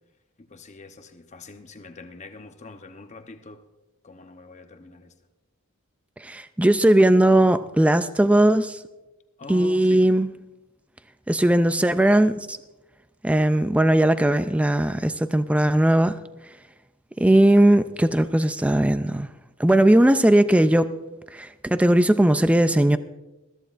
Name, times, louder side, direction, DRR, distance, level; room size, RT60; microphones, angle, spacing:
voice 1, 0.4-3.6 4.0-5.1 9.4-10.1, left 3 dB, 35° left, 0.8 m, -43 dB
voice 2, 6.2-8.8 9.5-10.3 11.3-12.6 13.2-16.2 17.2-19.3 19.6-21.0 21.3-23.0, right 1 dB, 5° right, 0.3 m, -18 dB
21.5 x 14.0 x 2.5 m
head